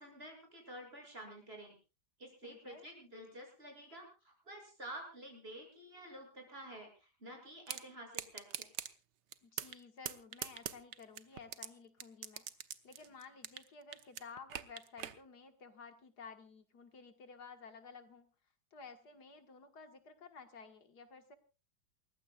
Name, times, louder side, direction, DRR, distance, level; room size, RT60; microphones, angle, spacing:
voice 1, 0.0-1.7 2.2-8.7, right 1 dB, 35° right, 2 dB, 7.4 m, -50 dB
voice 2, 2.4-2.9 9.4-12.5 12.8-18.3 18.7-21.4, left 5 dB, 70° left, 7 dB, 2.1 m, -54 dB
sound 1, 7.7-7.8 8.1-8.9 9.3-9.8 10.1-11.7 12.0-13.7 13.9-15.2, right 10 dB, 85° right, 1.6 m, -41 dB
29.0 x 15.0 x 2.4 m, 0.33 s
omnidirectional pair, 1.8 m